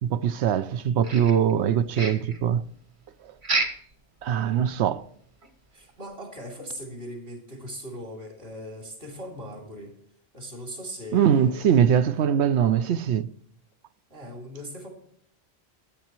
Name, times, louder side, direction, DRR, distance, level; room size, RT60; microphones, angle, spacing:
voice 1, 0.0-2.6 4.2-5.0 11.1-13.3, right 8 dB, 90° right, 1.0 m, -22 dB
sound 1, 1.0-1.7 1.9-2.4 3.4-3.9 4.3-4.4 4.8-4.9 5.4-5.5, right 3 dB, 50° right, 1.4 m, -29 dB
voice 2, 5.7-10.0 10.3-11.8 14.1-14.9, equal, 70° right, 3.3 m, -39 dB
15.5 x 10.5 x 3.0 m
omnidirectional pair, 1.1 m